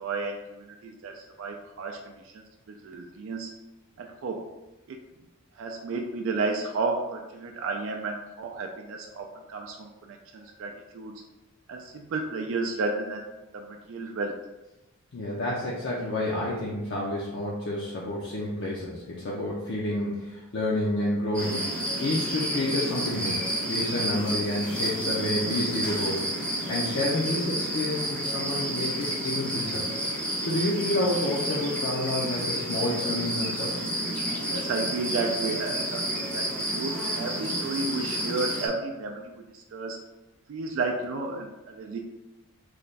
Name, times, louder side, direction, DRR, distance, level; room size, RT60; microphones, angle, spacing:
voice 1, 0.0-3.5 4.0-4.5 4.9-5.0 5.5-11.1 11.7-13.2 13.5-14.3 34.5-36.0 36.3-40.0 40.5-42.0, right 3 dB, 60° right, 2 dB, 0.3 m, -32 dB
voice 2, 15.1-21.7 22.0-26.3 26.7-29.8 30.4-33.8, left 1 dB, 55° left, -5 dB, 0.5 m, -29 dB
sound 1, 21.3-38.7, right 1 dB, 5° left, 0.6 m, -30 dB
3.2 x 2.2 x 3.9 m, 1.0 s
head